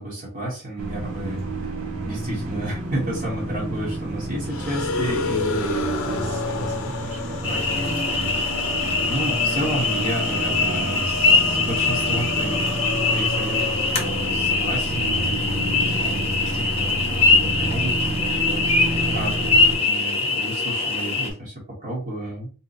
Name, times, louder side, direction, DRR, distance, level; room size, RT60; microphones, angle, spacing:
voice 1, 0.0-1.7 2.0-8.4 9.0-12.7 13.0-22.5, right 1 dB, 40° right, -4 dB, 1.1 m, -32 dB
sound 1, 0.8-19.8, right 2 dB, 75° right, 0.9 m, -30 dB
sound 2, 4.5-14.7, left 4 dB, 75° left, 0.6 m, -31 dB
sound 3, 7.4-21.3, left 3 dB, 30° left, 0.7 m, -23 dB
2.8 x 2.3 x 3.9 m, 0.37 s
head